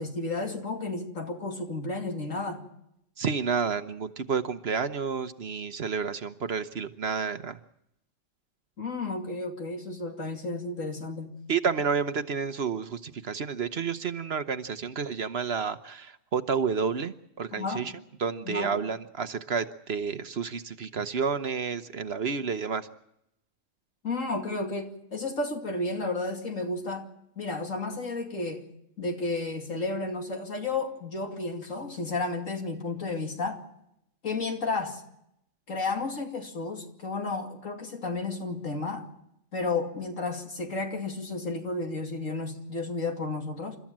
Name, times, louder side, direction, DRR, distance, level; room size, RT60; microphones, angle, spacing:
voice 1, 0.0-2.6 8.8-11.3 17.5-17.9 18.4-18.7 24.0-27.1 27.4-28.6 29.0-33.6 34.2-35.0 35.7-39.1 39.5-43.8, left 3 dB, 75° left, 2.9 m, -32 dB
voice 2, 3.2-7.6 11.5-17.9 18.2-22.9, right 6 dB, 55° right, 1.1 m, -30 dB
30.0 x 13.5 x 7.4 m
omnidirectional pair, 1.4 m